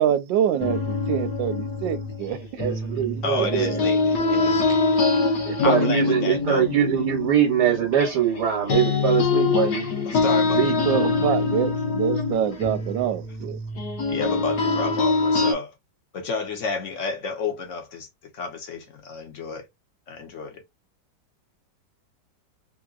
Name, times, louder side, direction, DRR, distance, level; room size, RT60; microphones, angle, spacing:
voice 1, 0.0-2.6 3.4-3.5 10.5-13.6, right 10 dB, 85° right, 1.3 m, -26 dB
sound 1, 0.6-8.4 8.7-15.5, left 4 dB, 65° left, 1.6 m, -24 dB
voice 2, 2.6-3.8 5.5-9.9 10.5-11.4, right 9 dB, 65° right, 1.4 m, -23 dB
voice 3, 3.2-5.0 5.6-6.7 10.0-10.6 14.1-15.7 16.1-18.1 18.3-19.7 20.1-20.6, left 4 dB, 50° left, 1.3 m, -30 dB
3.7 x 2.8 x 2.4 m
omnidirectional pair, 1.9 m